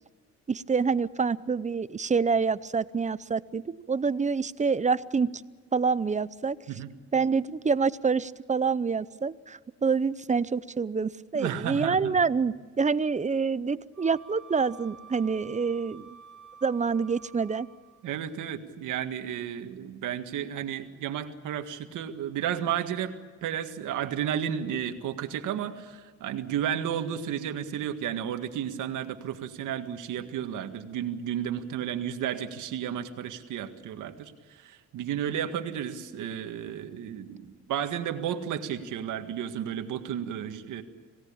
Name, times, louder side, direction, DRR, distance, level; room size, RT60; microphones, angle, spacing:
voice 1, 0.5-5.3 5.7-6.6 7.1-16.2 16.6-17.7, right 5 dB, 25° right, 17 dB, 0.7 m, -27 dB
voice 2, 11.3-12.2 18.0-23.1 23.4-40.8, right 9 dB, 85° right, 7 dB, 1.9 m, -32 dB
Wind instrument woodwind instrument, 13.9-18.0, right 7 dB, ahead, 4.0 m, -50 dB
26.5 x 18.0 x 8.7 m, 1.5 s
cardioid pair, 90°, 30 cm